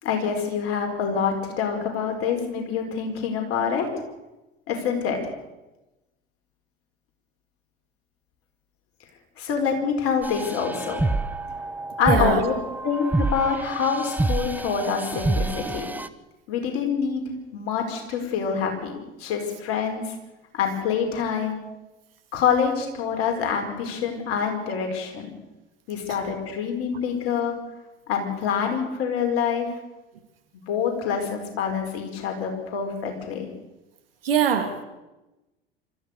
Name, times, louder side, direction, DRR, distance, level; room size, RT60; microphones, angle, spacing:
voice 1, 0.0-3.9 4.7-5.3 9.4-11.0 12.0-12.5 12.8-15.9 16.5-17.2 17.5-20.1 20.5-21.6 22.3-25.3 25.9-27.5 28.1-29.7 30.7-33.5, left 6 dB, 50° left, 3 dB, 5.0 m, -26 dB
sound 1, 10.2-16.1, right 2 dB, 5° right, 1.0 m, -27 dB
voice 2, 12.0-12.4 26.1-26.2 34.2-34.8, right 8 dB, 70° right, 6 dB, 2.6 m, -23 dB
27.0 x 14.0 x 6.7 m, 1.0 s
figure-of-eight pair, 70°, 30 cm